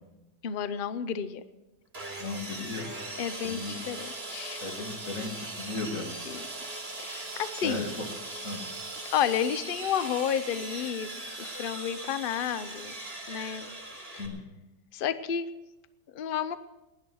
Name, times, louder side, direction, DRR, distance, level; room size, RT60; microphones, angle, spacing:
voice 1, 0.4-1.4 3.2-4.6 6.3-6.4 7.0-7.9 9.0-11.1 11.4-12.9 13.3-13.7 14.1-14.2 14.9-15.5 16.1-16.6, left 8 dB, 75° left, 13 dB, 0.4 m, -31 dB
Sawing, 1.9-14.3, right 2 dB, 35° right, 3.0 m, -39 dB
voice 2, 2.2-2.9 3.4-3.7 4.6-6.1 7.6-7.9 8.4-8.7 14.2-14.4, left 3 dB, 45° left, 2 dB, 2.6 m, -35 dB
18.5 x 11.0 x 6.3 m, 1.0 s
omnidirectional pair, 1.9 m